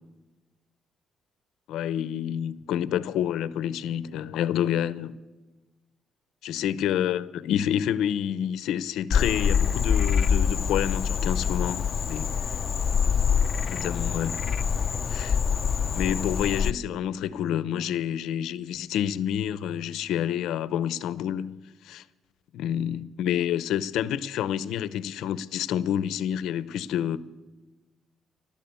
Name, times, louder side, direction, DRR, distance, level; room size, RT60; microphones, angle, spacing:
voice 1, 1.7-5.2 6.4-12.3 13.7-14.4 15.1-15.4 15.9-21.6 21.8-22.0 22.5-27.2, left 10 dB, 85° left, 0.8 m, -28 dB
Frog, 9.1-16.7, left 7 dB, 50° left, 0.7 m, -25 dB
29.0 x 12.5 x 8.4 m
cardioid pair, 90°, 0 cm